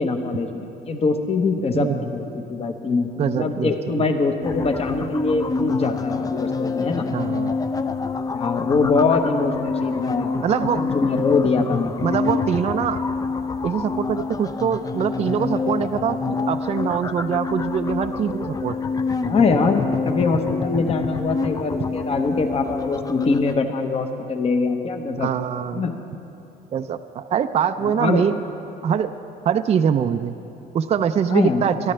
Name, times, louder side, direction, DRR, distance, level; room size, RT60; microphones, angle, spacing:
voice 1, 0.0-7.1 8.3-10.4 10.7-12.0 19.3-25.3 25.7-26.0 27.8-28.2 31.3-31.7, left 4 dB, 35° left, 6 dB, 1.1 m, -23 dB
voice 2, 3.2-3.7 7.1-7.6 10.4-10.9 12.0-13.0 13.6-18.7 25.2-25.9 26.7-28.4 28.8-29.1 29.4-30.4 30.7-31.7, right 8 dB, 40° right, 8 dB, 0.4 m, -23 dB
sound 1, 4.4-23.6, left 4 dB, 20° left, 0.4 m, -26 dB
22.5 x 12.5 x 3.3 m, 2.9 s
cardioid pair, 110°, 17 cm